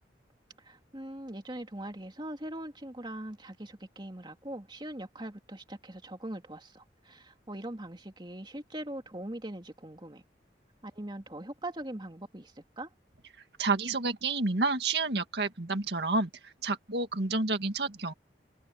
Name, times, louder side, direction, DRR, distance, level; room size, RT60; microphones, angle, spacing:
voice 1, 0.6-10.2 10.8-12.9, right 1 dB, 25° right, 2.7 m, -41 dB
voice 2, 13.6-18.1, right 3 dB, 70° right, 2.0 m, -30 dB
head